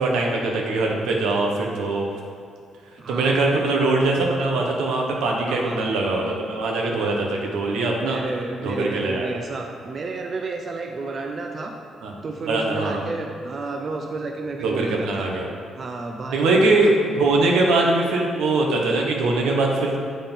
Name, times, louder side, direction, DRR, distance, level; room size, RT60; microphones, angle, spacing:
voice 1, 0.0-2.1 3.1-8.2 8.6-9.3 12.0-12.1 12.5-13.1 14.6-15.5 16.3-20.0, right 2 dB, 85° right, 0 dB, 1.0 m, -22 dB
voice 2, 3.0-3.7 5.4-5.8 8.0-11.7 12.2-15.3 15.7-16.9, right 3 dB, 45° right, 2 dB, 0.5 m, -31 dB
7.0 x 3.8 x 5.4 m, 2.2 s
cardioid pair, 90°, 0 cm